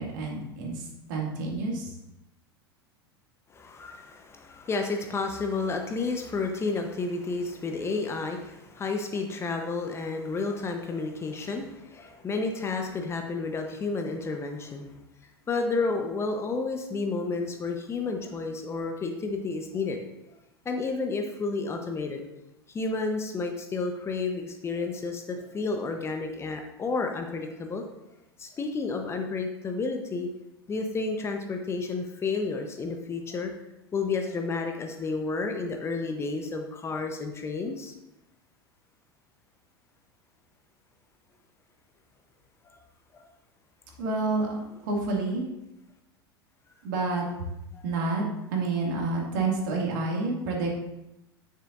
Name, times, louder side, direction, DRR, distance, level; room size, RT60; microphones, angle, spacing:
voice 1, 0.0-1.9 44.0-45.5 46.8-47.3 47.8-48.2 48.5-50.8, right 3 dB, 55° right, -1 dB, 2.4 m, -29 dB
voice 2, 3.5-14.9 15.5-20.0 20.6-22.2 22.7-27.8 28.4-30.3 30.7-33.5 33.9-37.9 43.1-43.2 47.7-47.8, left 3 dB, 20° left, 4 dB, 1.0 m, -31 dB
9.8 x 9.4 x 2.7 m, 0.90 s
figure-of-eight pair, 85°, 13 cm